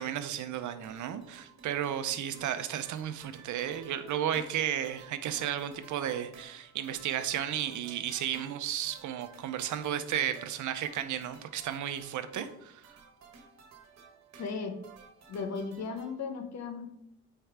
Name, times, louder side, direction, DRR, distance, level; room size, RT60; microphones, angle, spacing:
voice 1, 0.0-12.8, right 10 dB, 75° right, 10 dB, 0.8 m, -33 dB
sound 1, 0.5-16.2, right 5 dB, 60° right, 1.6 m, -55 dB
voice 2, 14.4-14.7 15.3-16.9, left 5 dB, 60° left, 6 dB, 1.2 m, -36 dB
8.8 x 4.6 x 3.6 m, 0.75 s
cardioid pair, 90°, 30 cm